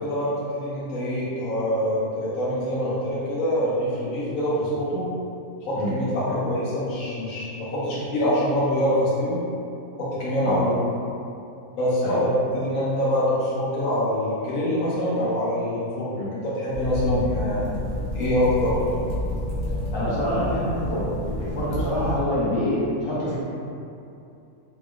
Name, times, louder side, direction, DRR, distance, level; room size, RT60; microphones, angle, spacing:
voice 1, 0.0-5.1 5.6-9.4 10.0-10.7 11.8-17.6 18.1-18.8, equal, 65° left, -8 dB, 1.0 m, -25 dB
sound 1, 16.7-22.3, left 1 dB, 85° right, 0.3 m, -29 dB
voice 2, 19.9-21.1 21.4-23.4, equal, 30° left, -10 dB, 0.5 m, -26 dB
2.9 x 2.9 x 2.3 m, 2.6 s
omnidirectional pair, 1.7 m